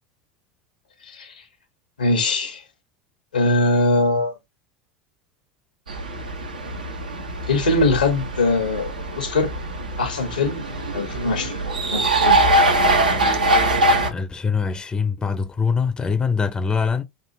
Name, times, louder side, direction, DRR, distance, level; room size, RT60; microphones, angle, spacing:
voice 1, 1.0-1.3 2.0-2.6 3.3-4.3 7.5-9.5 10.0-12.5, left 2 dB, 85° left, 0.9 m, -22 dB
sound 1, 5.9-14.1, right 1 dB, 90° right, 0.8 m, -22 dB
voice 2, 14.1-17.0, left 5 dB, 20° left, 0.5 m, -23 dB
3.4 x 2.5 x 2.8 m
hypercardioid pair, 80°, 4 cm